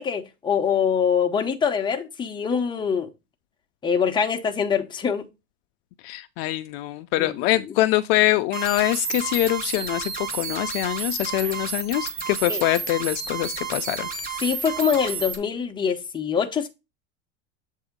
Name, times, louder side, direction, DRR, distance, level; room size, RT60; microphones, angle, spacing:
voice 1, 0.0-3.1 3.8-5.2 7.2-7.4 7.6-7.8 11.4-11.5 12.5-12.7 14.4-16.7, left 7 dB, 15° left, 0.8 m, -24 dB
voice 2, 6.0-14.1, left 16 dB, 55° left, 0.5 m, -24 dB
sound 1, 8.5-15.4, right 6 dB, 25° right, 1.2 m, -31 dB
7.8 x 2.7 x 5.0 m
supercardioid pair, 140°, 35 cm